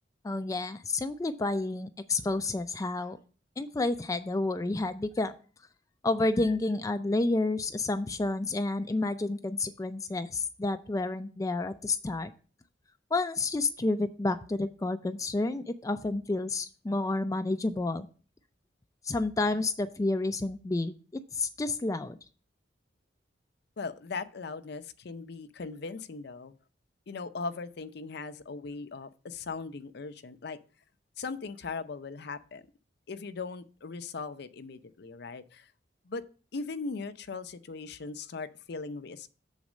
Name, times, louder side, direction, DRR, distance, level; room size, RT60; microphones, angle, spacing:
voice 1, 0.2-3.2 3.6-5.3 6.0-12.3 13.1-18.1 19.0-22.2, left 2 dB, 20° left, 9 dB, 0.4 m, -30 dB
voice 2, 23.8-26.6 27.1-30.6 31.2-32.7 33.1-35.7 36.1-36.2 36.5-39.3, left 4 dB, 65° left, 11 dB, 0.6 m, -39 dB
7.1 x 4.1 x 6.2 m, 0.39 s
head